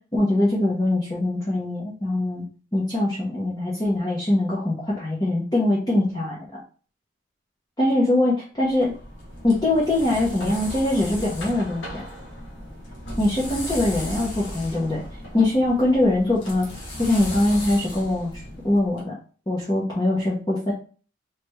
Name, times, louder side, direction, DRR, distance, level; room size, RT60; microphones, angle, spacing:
voice 1, 0.1-2.4 2.7-6.4 7.8-8.9 9.4-12.0 13.2-15.0 15.3-16.7 17.0-18.3 18.6-19.2 19.5-20.7, left 1 dB, 20° left, -7 dB, 0.9 m, -22 dB
sound 1, 8.7-19.0, left 1 dB, 65° left, 1.3 m, -36 dB
3.3 x 3.2 x 3.1 m, 0.39 s
head